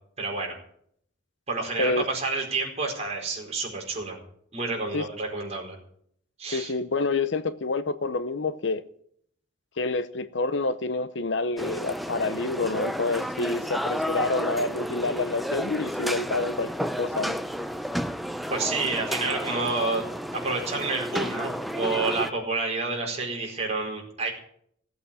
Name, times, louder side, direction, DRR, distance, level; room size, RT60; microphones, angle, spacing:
voice 1, 0.2-0.6 1.5-4.2 4.5-5.7 6.4-6.7 18.5-20.1 20.3-24.3, right 3 dB, 35° right, 4.8 m, -29 dB
voice 2, 6.5-8.8 9.8-17.4, left 3 dB, 60° left, 0.7 m, -28 dB
sound 1, 11.6-22.3, equal, ahead, 0.5 m, -31 dB
16.5 x 8.3 x 8.7 m
head